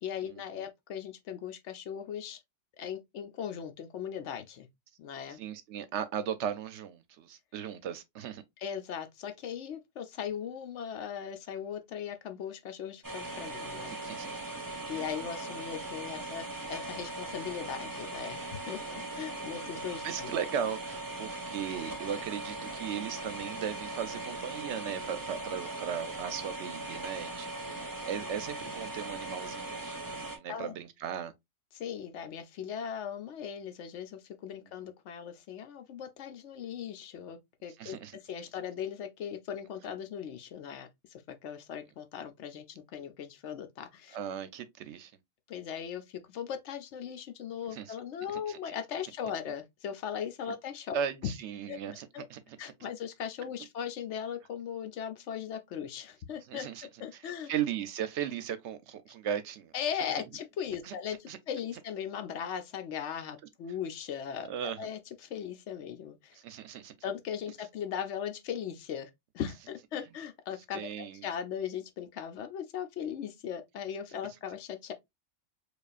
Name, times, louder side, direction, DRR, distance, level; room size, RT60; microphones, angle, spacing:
voice 1, 0.0-2.4 2.8-4.7 5.0-5.4 8.6-13.9 14.9-20.3 30.5-30.7 31.7-44.2 45.5-51.3 51.7-51.8 52.1-52.2 52.6-56.7 57.0-57.5 59.7-66.4 67.0-74.9, left 8 dB, 70° left, 0.9 m, -38 dB
voice 2, 5.4-8.4 13.7-14.5 14.9-15.1 16.3-16.4 20.0-31.3 37.8-38.1 44.1-45.1 47.7-47.9 48.5-48.6 50.9-52.4 56.5-56.9 57.5-59.7 60.9-61.0 61.3-61.4 64.5-64.8 66.4-66.9 70.7-71.2, right 8 dB, 70° right, 0.8 m, -37 dB
sound 1, 13.0-30.4, right 2 dB, 20° right, 0.8 m, -39 dB
4.9 x 2.4 x 2.4 m
omnidirectional pair, 1.3 m